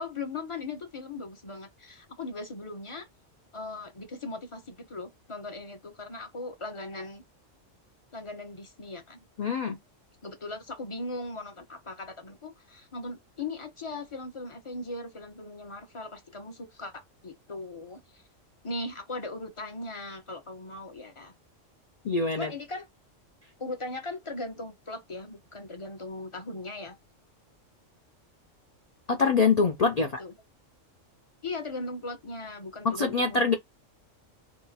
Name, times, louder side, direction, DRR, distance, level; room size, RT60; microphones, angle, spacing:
voice 1, 0.0-3.1 3.5-7.2 8.1-9.2 10.2-18.2 18.6-21.3 22.3-22.9 23.6-27.0 30.0-30.3 31.4-33.5, left 2 dB, 30° left, 0.7 m, -39 dB
voice 2, 9.4-9.8 22.1-22.5 29.1-30.1 32.8-33.5, left 4 dB, 70° left, 0.3 m, -24 dB
2.9 x 2.4 x 4.0 m
omnidirectional pair, 1.3 m